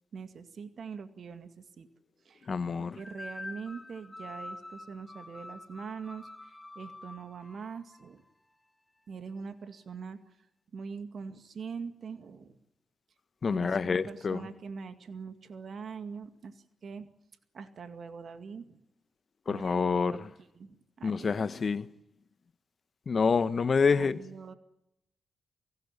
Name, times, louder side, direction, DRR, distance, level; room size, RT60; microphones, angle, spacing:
voice 1, 0.1-1.9 2.2-2.5 2.8-8.2 9.1-10.2 10.7-12.6 13.5-17.1 17.5-18.8 19.5-21.4 23.9-24.5, right 5 dB, 60° right, 2.1 m, -43 dB
voice 2, 2.5-3.0 13.4-14.4 19.5-20.2 21.0-21.9 23.1-24.2, left 5 dB, 50° left, 1.4 m, -27 dB
sound 1, 3.0-8.1, left 2 dB, 20° left, 2.1 m, -46 dB
24.0 x 16.5 x 9.9 m
hypercardioid pair, 40°, 0 cm